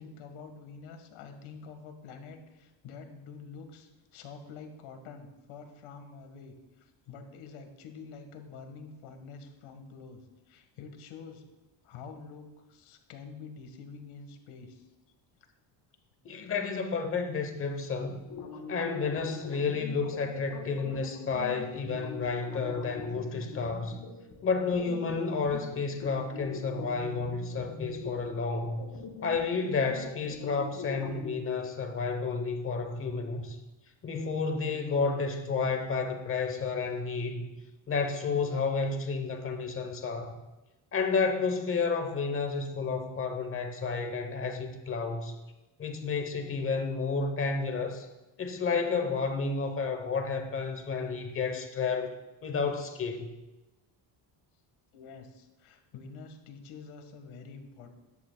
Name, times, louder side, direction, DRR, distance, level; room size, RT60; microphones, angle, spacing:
voice 1, 0.0-11.4 11.8-14.8 54.9-57.9, left 5 dB, 85° left, 5 dB, 1.7 m, -47 dB
voice 2, 16.2-18.2 18.7-24.0 24.4-28.8 29.2-33.6 34.0-37.5 37.9-40.4 40.9-45.4 45.8-48.1 48.4-52.1 52.4-53.3, left 4 dB, 25° left, 6 dB, 0.9 m, -31 dB
sound 1, 18.3-31.4, left 5 dB, 55° left, 1.7 m, -43 dB
13.5 x 10.5 x 2.3 m, 1.0 s
cardioid pair, 175°, 48 cm